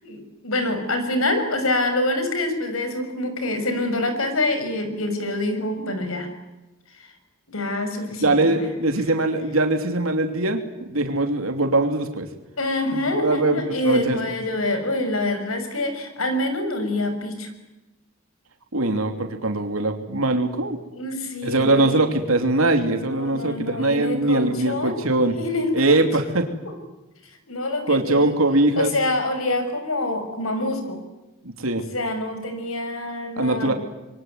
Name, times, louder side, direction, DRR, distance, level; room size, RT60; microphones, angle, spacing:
voice 1, 0.0-6.3 7.5-8.4 12.6-17.5 20.9-22.0 23.0-25.0 25.4-26.1 27.5-28.4 28.8-31.0 31.9-33.7, left 2 dB, 80° left, 8 dB, 6.3 m, -26 dB
voice 2, 8.2-10.6 10.9-12.3 12.9-14.2 18.7-20.8 21.4-25.4 25.7-26.5 27.9-28.9 31.6-31.8 33.4-33.7, right 2 dB, 90° right, 5 dB, 3.0 m, -21 dB
26.5 x 23.5 x 9.3 m, 1.0 s
head